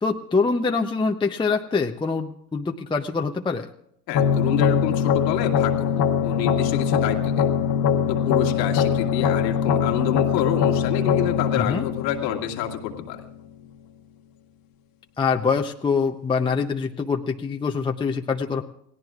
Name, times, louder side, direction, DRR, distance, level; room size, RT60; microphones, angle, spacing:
voice 1, 0.0-3.7 11.6-11.9 15.2-18.6, left 4 dB, 10° left, 3 dB, 0.7 m, -24 dB
voice 2, 4.1-7.5 8.1-13.2, left 10 dB, 85° left, 2 dB, 2.2 m, -28 dB
sound 1, 4.1-13.1, left 7 dB, 45° left, 1.4 m, -22 dB
28.5 x 17.5 x 2.5 m, 0.76 s
hypercardioid pair, 95°, 49 cm